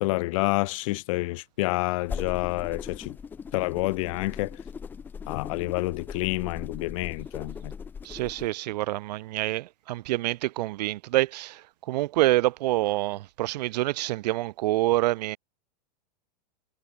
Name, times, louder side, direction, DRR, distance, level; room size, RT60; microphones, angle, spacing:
voice 1, 0.0-3.2 3.5-4.6 5.3-7.7, left 21 dB, 50° left, 0.8 m, -28 dB
sound 1, 2.0-8.5, left 6 dB, 10° left, 0.4 m, -39 dB
voice 2, 8.0-11.6 11.9-15.4, right 17 dB, 75° right, 0.4 m, -26 dB
supercardioid pair, 155°, 21 cm